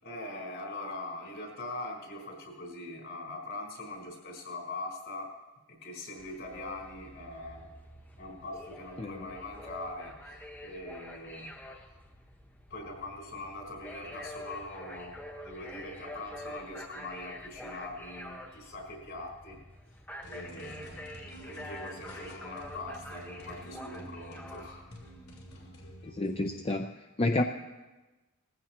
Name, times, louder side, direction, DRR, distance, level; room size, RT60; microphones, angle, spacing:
voice 1, 0.0-5.3 5.7-7.7 8.2-11.6 12.7-15.1 15.4-19.6 20.2-21.0 21.5-24.9 25.5-25.8, left 2 dB, 55° left, -1 dB, 4.5 m, -42 dB
sound 1, 6.2-25.6, left 1 dB, 10° left, 1.0 m, -47 dB
sound 2, 20.2-26.7, equal, 75° left, 2.7 m, -49 dB
voice 2, 26.0-26.9 27.2-27.4, left 2 dB, 25° left, 6 dB, 0.5 m, -29 dB
19.5 x 15.0 x 3.0 m, 1.1 s
head